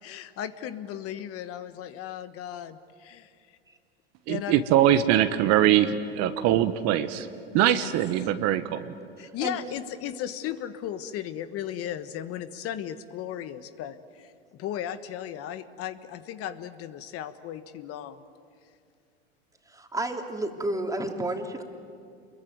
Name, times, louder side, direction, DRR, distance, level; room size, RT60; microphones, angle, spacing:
voice 1, 0.0-3.3 4.3-4.6 7.5-7.9 9.2-14.3 14.6-18.2, left 10 dB, 45° left, 11 dB, 1.3 m, -36 dB
voice 2, 4.3-7.3 7.5-8.9, right 11 dB, 55° right, 10 dB, 1.5 m, -22 dB
voice 3, 19.7-21.6, right 1 dB, 10° right, 3 dB, 3.0 m, -31 dB
28.0 x 22.5 x 9.4 m, 2.4 s
hypercardioid pair, 95°, 31 cm